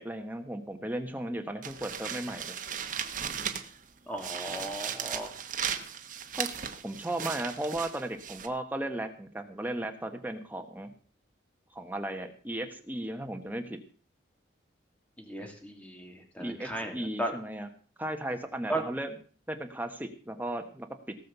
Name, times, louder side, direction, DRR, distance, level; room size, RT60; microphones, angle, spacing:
voice 1, 0.0-2.6 6.3-6.5 6.8-10.9 11.7-13.8 16.4-17.7 18.0-19.1 19.5-21.2, right 1 dB, 10° right, 6 dB, 1.2 m, -35 dB
sound 1, 1.6-3.8 4.2-8.5, right 8 dB, 45° right, 1.2 m, -36 dB
voice 2, 4.1-5.3 15.2-17.3 18.7-18.8, right 1 dB, 5° left, 3 dB, 2.7 m, -36 dB
18.0 x 6.5 x 6.8 m, 0.42 s
head